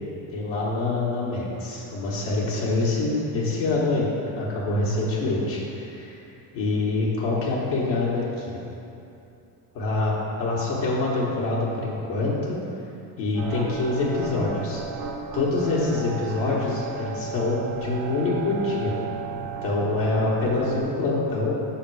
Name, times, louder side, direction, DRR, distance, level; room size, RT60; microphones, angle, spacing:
voice 1, 0.3-4.1 4.3-6.2 6.5-8.6 9.7-10.1 10.4-12.6 13.2-14.8 15.3-19.0 19.4-21.5, left 2 dB, 70° left, -6 dB, 1.4 m, -25 dB
sound 1, 13.3-20.8, right 5 dB, 50° right, 0.8 m, -35 dB
6.0 x 3.8 x 4.7 m, 2.8 s
supercardioid pair, 105°, 46 cm